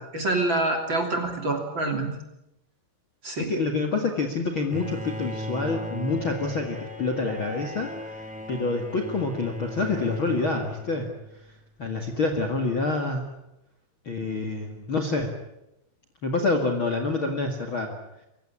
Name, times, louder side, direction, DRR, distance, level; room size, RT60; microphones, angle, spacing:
voice 1, 0.0-2.1 3.2-3.5, right 2 dB, 30° right, 4 dB, 2.7 m, -26 dB
voice 2, 3.4-8.2 8.5-11.1 11.8-13.3 14.0-15.3 16.2-18.0, left 3 dB, 85° left, 4 dB, 1.1 m, -27 dB
Bowed string instrument, 4.7-11.5, left 1 dB, ahead, 1.9 m, -37 dB
26.0 x 16.0 x 10.0 m, 0.88 s
omnidirectional pair, 5.9 m